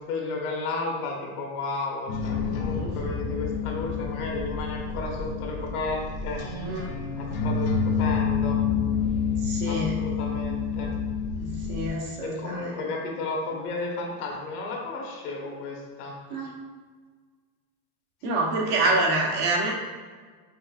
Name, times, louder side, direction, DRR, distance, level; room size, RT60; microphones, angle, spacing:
voice 1, 0.0-6.4 7.2-8.6 9.7-10.9 12.2-16.1, left 3 dB, 85° left, 0 dB, 1.1 m, -33 dB
sound 1, 2.1-11.9, left 5 dB, 50° left, 0.6 m, -28 dB
voice 2, 9.4-10.0 11.4-12.8 16.3-16.5 18.2-19.7, right 2 dB, 55° right, -1 dB, 1.0 m, -27 dB
5.4 x 2.5 x 2.4 m, 1.5 s
supercardioid pair, 145°, 44 cm